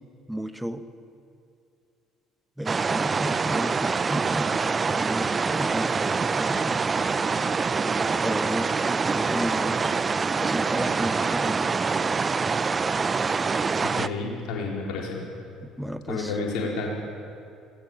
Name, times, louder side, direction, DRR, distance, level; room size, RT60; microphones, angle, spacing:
voice 1, 0.3-0.8 2.6-6.8 8.2-10.0 10.4-11.7 15.6-16.4, equal, 5° right, 9 dB, 1.6 m, -33 dB
sound 1, 2.7-14.1, right 4 dB, 30° right, 0.8 m, -25 dB
voice 2, 13.8-15.2 16.1-16.9, left 4 dB, 65° left, -2 dB, 4.5 m, -30 dB
27.5 x 19.5 x 7.5 m, 2.5 s
figure-of-eight pair, 55°, 0 cm